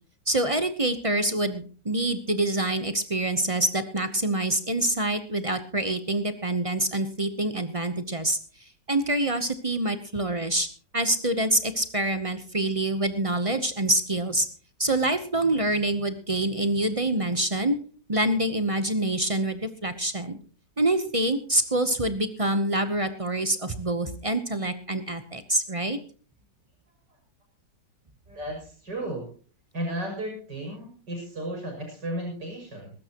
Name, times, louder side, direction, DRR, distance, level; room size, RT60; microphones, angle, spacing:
voice 1, 0.3-8.4 8.9-10.7 10.9-14.5 14.8-17.8 18.1-20.4 20.8-26.0, right 1 dB, 25° right, 10 dB, 0.8 m, -26 dB
voice 2, 28.3-29.2 29.7-32.9, right 1 dB, 70° right, 1 dB, 6.9 m, -34 dB
22.0 x 13.0 x 3.0 m, 0.41 s
omnidirectional pair, 1.9 m